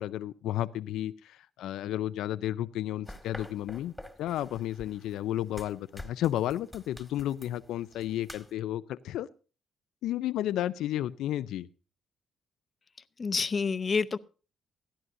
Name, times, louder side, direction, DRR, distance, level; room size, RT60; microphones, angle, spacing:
voice 1, 0.0-3.9 4.2-9.3 10.0-11.7, left 13 dB, 85° left, 0.5 m, -32 dB
sound 1, 3.1-8.5, left 1 dB, 5° left, 1.9 m, -48 dB
voice 2, 13.2-14.2, left 5 dB, 35° left, 0.7 m, -28 dB
17.5 x 12.5 x 2.6 m
cardioid pair, 90°, 0 cm